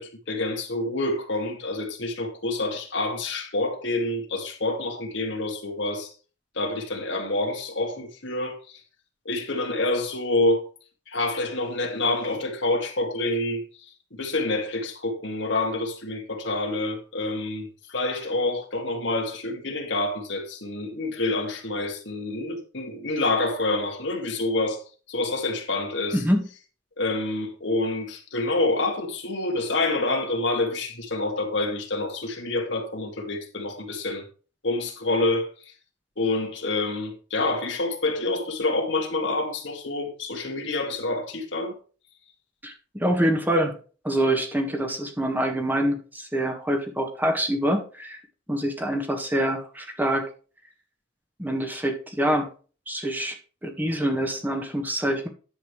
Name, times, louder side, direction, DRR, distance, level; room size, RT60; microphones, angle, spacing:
voice 1, 0.0-6.1 6.6-8.8 9.3-10.6 11.1-13.6 14.1-24.8 25.1-26.2 27.0-34.2 34.6-35.5 36.2-41.7, left 2 dB, 75° left, 2.3 m, -27 dB
voice 2, 42.6-43.8 44.0-48.2 48.5-50.2 51.4-52.5 52.9-53.4 53.6-55.3, right 1 dB, 10° right, 1.6 m, -25 dB
10.5 x 7.5 x 3.3 m
head